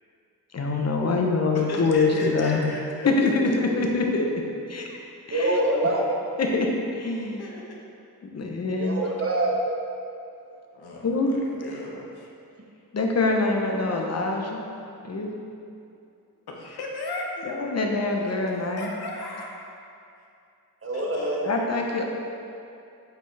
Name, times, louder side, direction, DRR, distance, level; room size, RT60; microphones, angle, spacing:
voice 1, 0.5-2.7 3.0-4.3 4.7-5.0 5.3-5.5 6.4-6.7 7.0-7.4 8.2-9.0 11.0-11.3 12.9-14.6 15.0-15.3 17.5-18.9 21.4-22.0, left 3 dB, 40° left, 1 dB, 0.9 m, -24 dB
voice 2, 1.5-3.4 7.4-7.8 10.7-12.3 16.5-17.3 18.3-18.4 18.8-19.5 20.9-21.4, left 2 dB, 75° left, -1 dB, 1.1 m, -36 dB
voice 3, 5.3-6.1 8.8-9.5 20.8-21.5, right 1 dB, 35° right, -1 dB, 1.1 m, -25 dB
8.0 x 4.3 x 3.4 m, 2.6 s
cardioid pair, 75°, 38 cm